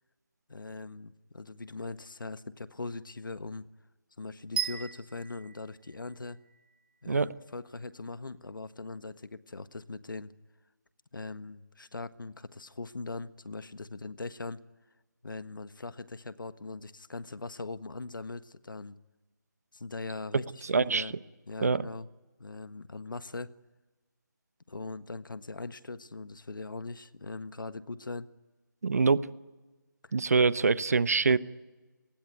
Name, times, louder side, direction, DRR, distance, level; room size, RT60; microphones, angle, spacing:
voice 1, 0.5-3.7 4.2-6.4 7.0-10.3 11.1-14.6 15.2-18.9 19.7-21.1 21.5-22.1 22.4-23.5 24.7-28.3 31.3-31.4, left 3 dB, 85° left, 13 dB, 1.5 m, -40 dB
sound 1, 4.6-6.6, right 9 dB, 30° right, 1.5 m, -36 dB
voice 2, 20.7-21.1 21.6-21.8 28.8-29.3 30.1-31.4, right 4 dB, 50° right, 17 dB, 1.0 m, -24 dB
27.5 x 20.0 x 9.7 m, 1.2 s
figure-of-eight pair, 170°, 11 cm